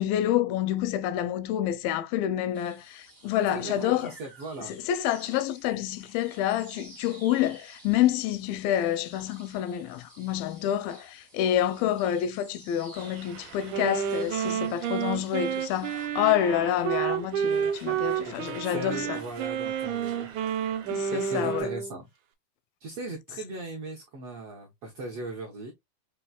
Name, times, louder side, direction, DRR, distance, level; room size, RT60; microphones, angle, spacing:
voice 1, 0.0-4.1 4.6-19.2 20.9-21.7, left 11 dB, 85° left, 2.3 m, -28 dB
sound 1, 2.5-16.1, right 1 dB, 35° right, 0.5 m, -52 dB
voice 2, 3.5-4.7 18.2-20.3 21.1-22.0 22.8-25.7, right 2 dB, 70° right, 1.4 m, -38 dB
sound 2, 12.9-21.6, right 6 dB, 55° right, 2.0 m, -49 dB
Wind instrument woodwind instrument, 13.7-21.9, right 8 dB, 85° right, 1.7 m, -30 dB
6.2 x 3.0 x 2.3 m
omnidirectional pair, 4.1 m